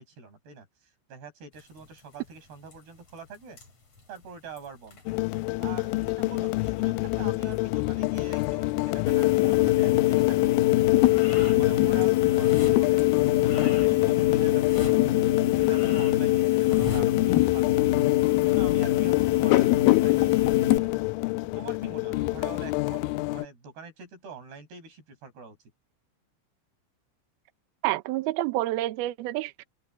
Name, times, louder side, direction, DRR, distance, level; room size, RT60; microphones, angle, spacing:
voice 1, 0.0-3.6 4.1-5.0 5.6-10.7 11.1-13.1 13.4-15.0 15.5-17.9 18.3-21.0 21.4-25.6, right 5 dB, 55° right, 7.6 m, -45 dB
sound 1, 1.5-20.8, left 3 dB, 30° left, 6.1 m, -45 dB
sound 2, 5.1-23.5, left 22 dB, 85° left, 3.0 m, -28 dB
sound 3, 9.1-20.8, left 16 dB, 70° left, 2.6 m, -22 dB
voice 2, 27.8-29.6, right 16 dB, 90° right, 2.2 m, -28 dB
omnidirectional pair, 5.7 m